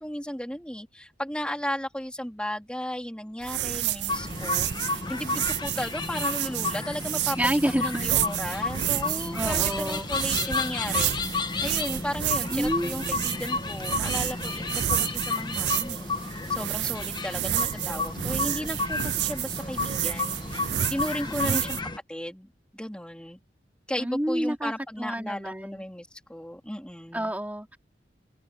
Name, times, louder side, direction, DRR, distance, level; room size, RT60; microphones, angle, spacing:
voice 1, 0.0-7.4 7.8-11.2 11.6-16.1 16.5-21.8 22.1-22.5 22.7-23.4 23.9-27.3, equal, 5° left, 2.8 m, -35 dB
sound 1, 3.4-21.8, right 12 dB, 70° right, 0.5 m, -31 dB
sound 2, 4.1-22.0, left 3 dB, 25° left, 1.3 m, -32 dB
voice 2, 7.4-8.1 9.3-10.1 12.5-13.2 21.2-21.6 24.0-24.7 25.0-25.8 27.1-27.8, equal, 10° right, 3.8 m, -29 dB
open air
head